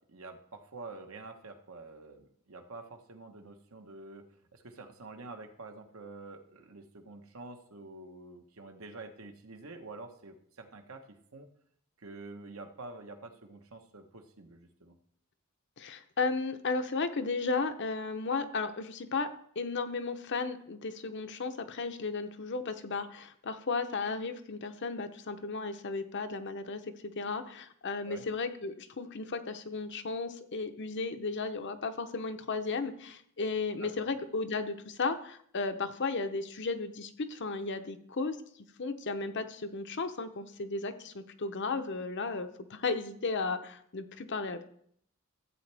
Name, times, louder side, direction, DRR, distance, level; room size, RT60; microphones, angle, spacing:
voice 1, 0.1-4.2 4.5-11.5 12.0-14.9 28.0-28.3 33.8-34.1, right 3 dB, 70° right, 5 dB, 1.2 m, -47 dB
voice 2, 15.8-19.3 19.6-26.8 27.2-38.4 38.8-44.6, left 4 dB, 55° left, 9 dB, 0.8 m, -34 dB
13.5 x 8.2 x 3.4 m, 0.65 s
head